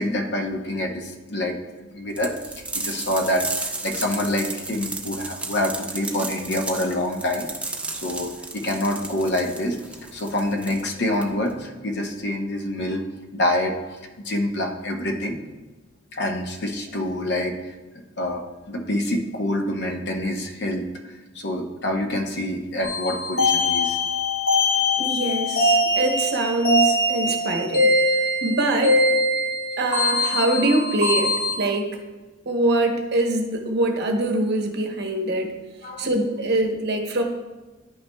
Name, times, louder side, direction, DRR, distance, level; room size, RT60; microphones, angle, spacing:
voice 1, 0.0-1.6 1.9-2.3 2.7-7.5 8.0-9.8 10.1-13.0 13.3-15.4 16.1-17.7 18.2-24.0 35.8-36.1, left 1 dB, 55° left, 3 dB, 0.8 m, -26 dB
sound 1, 2.2-11.6, right 3 dB, 5° right, 0.5 m, -33 dB
sound 2, 22.8-31.6, left 1 dB, 75° left, 2.2 m, -22 dB
voice 2, 25.0-27.9 28.4-29.0 29.8-31.9 32.5-35.5 36.0-37.2, right 2 dB, 55° right, 3 dB, 0.9 m, -23 dB
10.5 x 5.8 x 2.2 m, 1.2 s
head